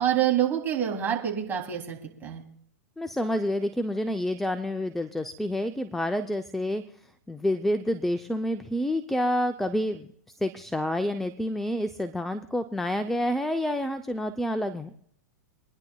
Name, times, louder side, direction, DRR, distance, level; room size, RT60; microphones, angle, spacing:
voice 1, 0.0-2.4, right 10 dB, 20° right, 0 dB, 3.2 m, -26 dB
voice 2, 3.0-6.8 7.3-10.1 10.4-14.9, left 1 dB, 5° left, 10 dB, 0.6 m, -28 dB
26.0 x 10.5 x 2.4 m, 0.66 s
figure-of-eight pair, 110°, 9 cm